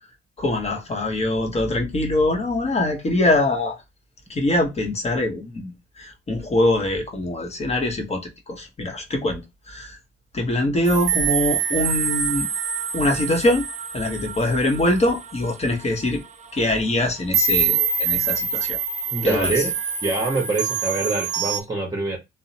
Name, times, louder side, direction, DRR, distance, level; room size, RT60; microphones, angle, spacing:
voice 1, 0.4-3.8 4.3-10.0 10.3-12.5 12.9-13.7 13.9-16.2 16.5-18.8 19.2-19.6, left 1 dB, 35° left, 0.9 m, -23 dB
sound 1, 10.8-15.9 16.4-16.6 17.3-21.6, right 6 dB, 35° right, 0.4 m, -25 dB
voice 2, 19.1-19.7 20.0-22.2, right 2 dB, 20° right, 0.8 m, -25 dB
2.8 x 2.0 x 2.7 m
cardioid pair, 90°, 20 cm